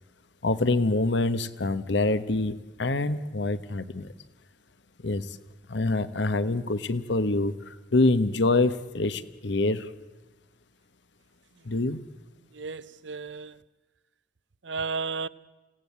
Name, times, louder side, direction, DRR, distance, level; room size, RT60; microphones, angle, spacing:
voice 1, 0.4-4.1 5.0-5.4 5.7-9.9 11.6-12.0, left 2 dB, 75° left, 1.1 m, -26 dB
voice 2, 12.6-13.5 14.7-15.3, right 4 dB, 80° right, 0.8 m, -33 dB
28.5 x 17.5 x 8.2 m
head